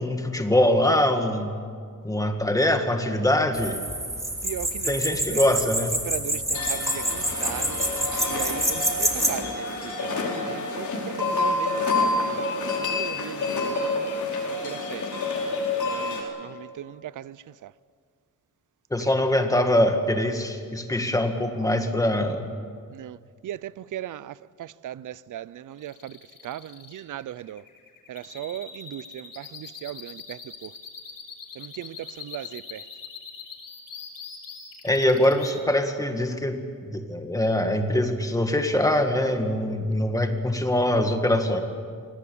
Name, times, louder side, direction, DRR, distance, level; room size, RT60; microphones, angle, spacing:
voice 1, 0.0-1.5 2.0-3.8 4.9-6.0 18.9-22.5 34.8-41.6, left 1 dB, 10° left, 2.0 m, -23 dB
sound 1, 3.5-9.3, right 1 dB, 10° right, 2.8 m, -27 dB
voice 2, 4.4-5.4 6.1-7.8 8.3-10.8 11.2-14.0 14.6-15.0 15.9-17.3 22.9-23.2 23.4-23.6 23.9-24.3 24.6-26.1 26.4-27.6 28.1-30.7 31.6-32.8, right 12 dB, 65° right, 0.6 m, -37 dB
sound 2, 6.5-16.2, left 3 dB, 60° left, 4.9 m, -28 dB
sound 3, 25.8-35.5, left 6 dB, 80° left, 6.2 m, -42 dB
25.0 x 18.5 x 8.6 m
wide cardioid pair, 140°, 34 cm